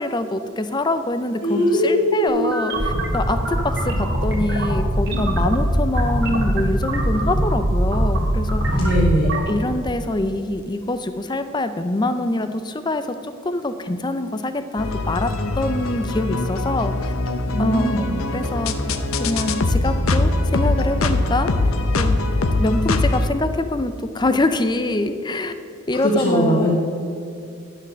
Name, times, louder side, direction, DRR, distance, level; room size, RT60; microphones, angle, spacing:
voice 1, 0.0-8.8 9.5-17.1 17.6-18.8 19.2-21.5 22.0-22.2 22.6-25.5 25.9-26.7, left 2 dB, 20° left, 10 dB, 0.5 m, -24 dB
voice 2, 1.4-2.2 8.7-9.4 17.4-18.1 25.9-26.7, equal, 45° left, -4 dB, 1.3 m, -20 dB
sound 1, 2.3-9.4, right 1 dB, 50° right, 1.9 m, -21 dB
sound 2, 14.8-23.3, left 2 dB, 70° left, 0.7 m, -22 dB
11.0 x 6.6 x 6.3 m, 2.6 s
head